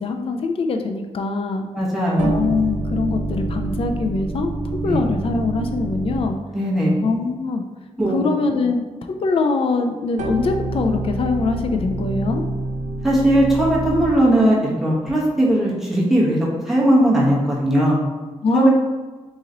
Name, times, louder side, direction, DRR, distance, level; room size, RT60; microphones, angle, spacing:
voice 1, 0.0-1.7 2.2-4.5 4.8-6.4 7.0-7.6 8.1-8.8 9.1-12.4 18.4-18.7, left 3 dB, 50° left, 5 dB, 0.4 m, -22 dB
voice 2, 1.7-2.4 4.8-5.0 6.5-6.9 8.0-8.3 13.0-18.0 18.5-18.7, right 1 dB, 5° right, -6 dB, 1.1 m, -18 dB
sound 1, 2.2-6.6 10.2-14.4, right 2 dB, 85° right, 0.4 m, -27 dB
3.9 x 3.0 x 3.8 m, 1.3 s
cardioid pair, 100°, 12 cm